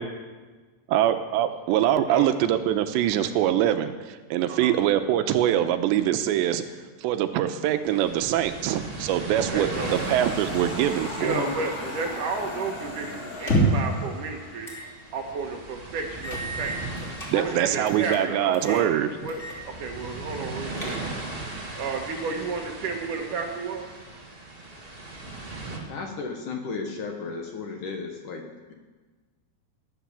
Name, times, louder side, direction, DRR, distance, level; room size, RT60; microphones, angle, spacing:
voice 1, 0.9-6.6 7.0-11.5 17.3-19.1, right 11 dB, 90° right, 9 dB, 3.1 m, -24 dB
voice 2, 2.1-2.4 4.5-4.8 9.4-10.0 11.1-14.7 15.1-16.8 17.4-18.9 19.2-21.0 21.7-23.9 25.8-25.9, right 4 dB, 65° right, 3 dB, 2.2 m, -32 dB
sound 1, 7.8-25.8, right 2 dB, 25° right, 1.2 m, -38 dB
sound 2, 9.5-14.7, left 3 dB, 90° left, 5.2 m, -39 dB
voice 3, 11.2-11.9 13.0-13.1 17.3-17.5 25.2-25.3 25.7-28.7, left 4 dB, 60° left, 3 dB, 2.5 m, -35 dB
sound 3, 13.3-13.9 14.6-14.9 15.3-15.4 16.2-17.3 17.9-18.2 18.5-18.9 19.3-19.6 19.9-20.0 20.5-21.3, right 1 dB, 20° left, 2.5 m, -28 dB
19.5 x 10.5 x 7.1 m, 1.3 s
omnidirectional pair, 5.0 m